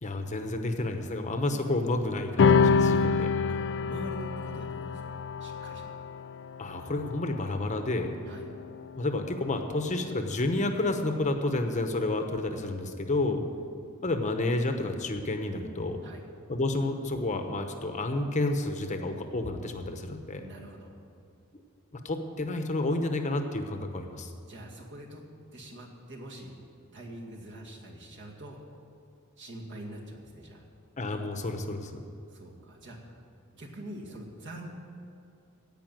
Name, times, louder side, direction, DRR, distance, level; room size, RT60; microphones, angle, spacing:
voice 1, 0.0-3.3 6.6-8.1 9.0-13.4 14.0-16.0 16.5-20.4 22.0-24.3 31.0-31.9, left 2 dB, 35° left, 6 dB, 0.9 m, -30 dB
sound 1, 2.4-9.1, left 5 dB, 55° left, 0.4 m, -27 dB
voice 2, 3.5-6.0 8.3-8.5 13.3-13.4 16.0-16.2 20.4-20.9 24.4-25.2 25.5-26.5 26.9-28.6 29.4-30.6 32.3-33.2 33.5-34.7, right 1 dB, 55° right, -1 dB, 2.1 m, -44 dB
16.5 x 5.6 x 9.2 m, 2.5 s
head